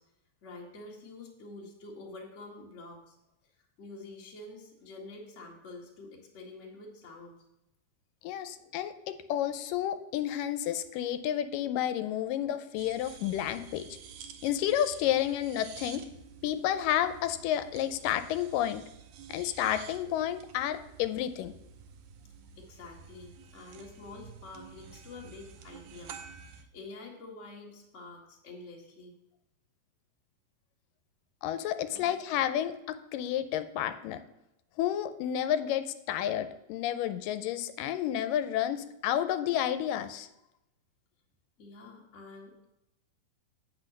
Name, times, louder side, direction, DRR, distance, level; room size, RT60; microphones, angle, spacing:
voice 1, 0.4-3.2 3.8-7.4 22.5-26.1 26.4-29.2 31.9-32.1 41.6-42.6, left 3 dB, 30° left, 0 dB, 1.4 m, -47 dB
voice 2, 8.2-13.9 14.4-16.1 16.4-18.8 19.3-21.5 31.4-34.2 34.8-40.3, left 11 dB, 90° left, 11 dB, 2.3 m, -31 dB
sound 1, 12.8-26.6, right 7 dB, 75° right, 2.3 m, -50 dB
8.5 x 6.1 x 6.4 m, 0.87 s
omnidirectional pair, 3.8 m